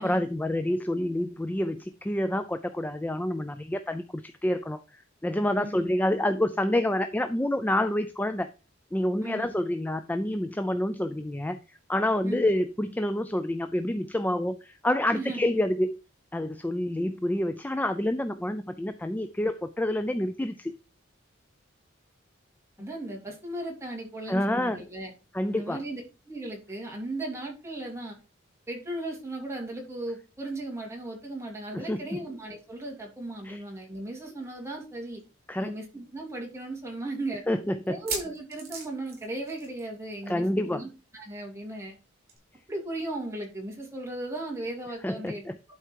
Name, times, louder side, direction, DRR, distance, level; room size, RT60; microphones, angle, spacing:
voice 1, 0.0-8.5 8.9-11.6 11.9-16.0 16.3-20.7 24.3-24.8 25.3-25.8 31.7-32.2 33.4-33.6 35.5-35.7 37.5-38.0 40.3-40.8 45.0-45.6, left 1 dB, 10° left, 10 dB, 0.4 m, -28 dB
voice 2, 5.6-5.9 9.2-9.5 12.2-12.5 15.1-15.5 22.8-25.1 25.5-26.0 26.3-28.1 28.7-35.2 35.6-37.4 37.9-40.9 41.1-42.0 42.7-45.5, right 1 dB, 15° right, -1 dB, 2.9 m, -36 dB
sound 1, 35.2-35.3 35.6-35.7 36.3-36.4 37.8-40.0 40.3-40.5 40.7-40.8 42.3-42.4, right 5 dB, 50° right, 5.3 m, -38 dB
11.5 x 4.6 x 4.6 m, 0.32 s
head